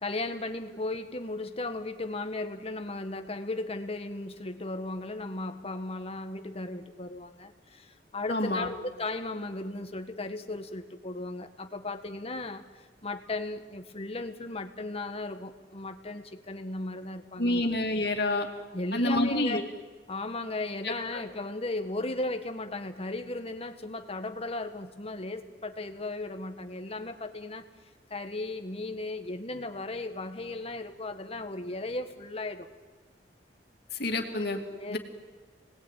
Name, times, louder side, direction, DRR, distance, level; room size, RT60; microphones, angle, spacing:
voice 1, 0.0-17.7 18.7-19.7 20.1-27.6 28.1-32.7 34.8-35.0, left 2 dB, 35° left, 7 dB, 1.7 m, -36 dB
voice 2, 8.3-8.7 17.4-18.5 18.9-19.6 20.8-20.9 34.0-34.6 34.9-35.0, left 1 dB, 65° left, 3 dB, 2.9 m, -27 dB
29.0 x 20.5 x 9.3 m, 1.3 s
head